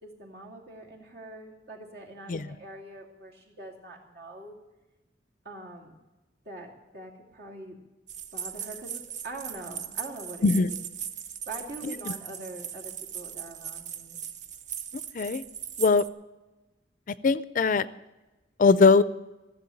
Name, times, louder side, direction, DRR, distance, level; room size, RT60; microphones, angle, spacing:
voice 1, 0.0-4.6 5.4-5.9 6.4-7.8 8.3-10.7 11.5-14.2, right 2 dB, 60° right, -1 dB, 2.7 m, -43 dB
sound 1, 8.1-16.1, right 8 dB, 45° right, 0.6 m, -39 dB
voice 2, 11.8-12.1 15.1-15.4 15.8-16.0 17.2-17.9 18.6-19.0, left 4 dB, 50° left, 16 dB, 0.4 m, -21 dB
15.0 x 7.3 x 8.4 m, 1.1 s
head